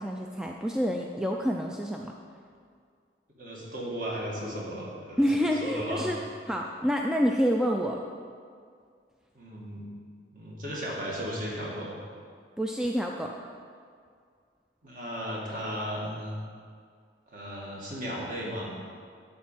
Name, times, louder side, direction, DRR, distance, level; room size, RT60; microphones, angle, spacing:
voice 1, 0.0-2.1 5.2-6.2 6.5-8.0 12.6-13.3, equal, 5° right, 1 dB, 0.4 m, -28 dB
voice 2, 3.4-6.1 9.3-9.8 10.3-12.0 14.8-16.4 17.3-18.7, equal, 45° right, -4 dB, 2.1 m, -35 dB
11.5 x 4.3 x 7.4 m, 2.1 s
head